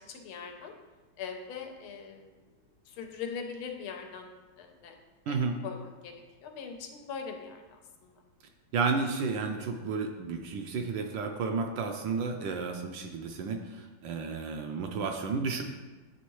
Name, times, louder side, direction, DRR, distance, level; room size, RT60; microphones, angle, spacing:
voice 1, 0.1-0.7 1.2-2.4 2.9-4.3 4.6-4.9 5.3-6.1 6.4-8.1, left 6 dB, 85° left, 4 dB, 1.6 m, -41 dB
voice 2, 8.7-15.6, right 4 dB, 75° right, 4 dB, 1.1 m, -32 dB
9.4 x 3.5 x 3.1 m, 1.3 s
omnidirectional pair, 2.3 m